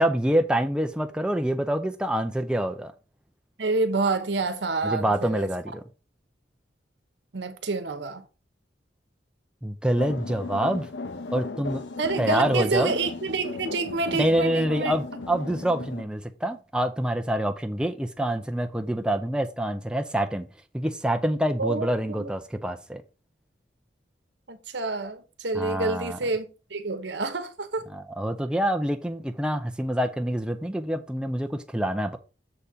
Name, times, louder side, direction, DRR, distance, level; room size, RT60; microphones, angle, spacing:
voice 1, 0.0-2.9 4.8-5.8 9.6-10.9 11.3-11.8 12.2-12.9 14.1-20.5 20.7-23.0 25.5-26.2 27.9-32.2, right 1 dB, 5° right, 0.5 m, -26 dB
voice 2, 3.6-5.5 7.3-8.2 12.0-14.9 15.3-15.4 21.6-22.3 24.5-27.9, right 3 dB, 70° right, 1.0 m, -28 dB
sound 1, 10.0-16.0, left 3 dB, 75° left, 0.8 m, -36 dB
6.8 x 4.3 x 4.8 m
head